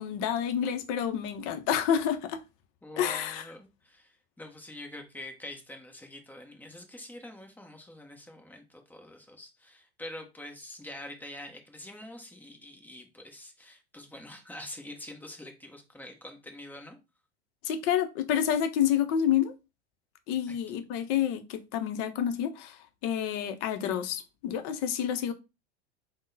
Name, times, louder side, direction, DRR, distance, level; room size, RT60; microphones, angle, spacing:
voice 1, 0.0-2.4 3.0-3.4 17.6-19.5 20.3-25.3, left 9 dB, 40° left, 0.6 m, -29 dB
voice 2, 2.8-17.0 20.5-20.6, left 1 dB, 5° left, 0.7 m, -45 dB
3.6 x 2.1 x 3.8 m
hypercardioid pair, 95°, 34 cm